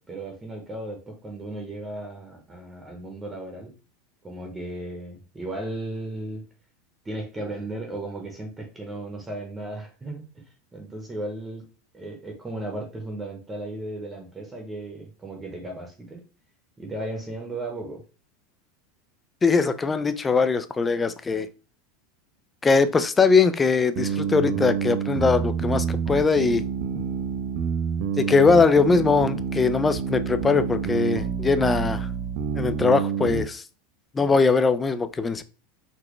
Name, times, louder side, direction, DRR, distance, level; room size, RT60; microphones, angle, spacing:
voice 1, 0.0-3.7 4.2-6.5 7.0-10.4 10.7-11.6 11.9-16.2 16.8-18.0, right 2 dB, 15° right, 0.9 m, -35 dB
voice 2, 19.4-21.5 22.6-26.6 28.2-32.1 32.6-33.6 34.1-35.4, left 4 dB, 15° left, 0.3 m, -21 dB
sound 1, 24.0-33.4, right 7 dB, 55° right, 0.6 m, -28 dB
4.0 x 2.2 x 3.1 m
supercardioid pair, 140°, 0 cm